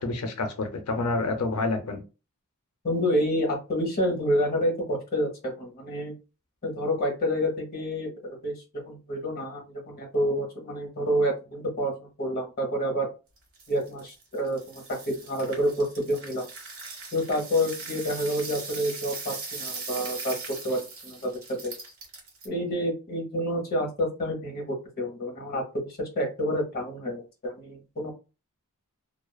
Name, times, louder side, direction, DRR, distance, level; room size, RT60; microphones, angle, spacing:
voice 1, 0.0-2.0, left 3 dB, 80° left, 6 dB, 0.5 m, -28 dB
voice 2, 2.8-6.1 6.6-13.1 13.7-16.5 17.1-20.3 20.6-21.3 21.6-21.7 22.4-28.1, equal, 45° left, 1 dB, 1.0 m, -28 dB
sound 1, 13.4-22.5, right 4 dB, 65° right, 1.1 m, -39 dB
2.4 x 2.3 x 2.2 m, 0.31 s
head